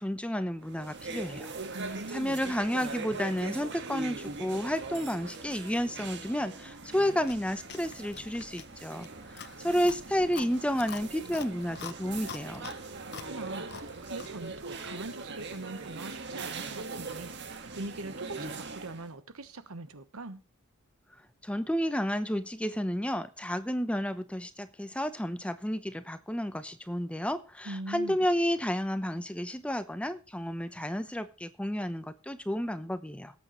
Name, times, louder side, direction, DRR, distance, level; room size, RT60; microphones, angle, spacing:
voice 1, 0.0-1.5 2.1-9.1 9.3-12.6 21.4-33.3, equal, 5° left, 0.8 m, -31 dB
sound 1, 0.6-19.1, right 3 dB, 55° right, 1.7 m, -41 dB
voice 2, 1.7-2.4 13.0-20.4 27.6-28.3, right 2 dB, 85° right, 1.2 m, -42 dB
Chewing mastication, 7.2-14.4, left 6 dB, 50° left, 0.8 m, -46 dB
18.0 x 8.4 x 3.1 m
head